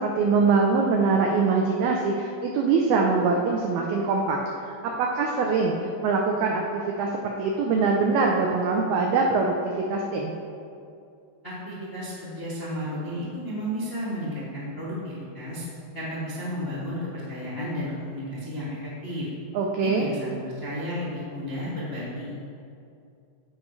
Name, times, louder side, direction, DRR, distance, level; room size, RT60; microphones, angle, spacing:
voice 1, 0.0-4.4 5.0-5.8 6.0-10.3 19.5-20.1, right 4 dB, 90° right, 0 dB, 2.1 m, -23 dB
voice 2, 11.4-15.7 15.9-19.3 19.8-22.3, equal, 50° left, -9 dB, 0.6 m, -33 dB
15.5 x 9.7 x 3.3 m, 2.5 s
omnidirectional pair, 5.5 m